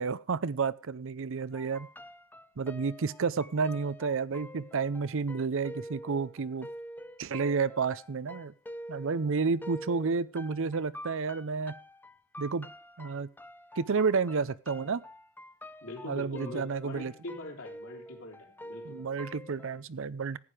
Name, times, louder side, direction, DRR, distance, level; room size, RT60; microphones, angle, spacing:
voice 1, 0.0-1.9 2.6-6.7 7.2-8.5 8.9-11.7 12.4-12.7 13.0-13.3 13.8-15.0 16.0-17.1 18.9-20.4, right 5 dB, 65° right, 18 dB, 0.6 m, -31 dB
sound 1, 1.5-19.8, equal, 10° left, 0.5 m, -47 dB
voice 2, 15.8-19.0, left 1 dB, 70° left, 2 dB, 3.5 m, -43 dB
14.5 x 9.4 x 4.9 m, 0.36 s
head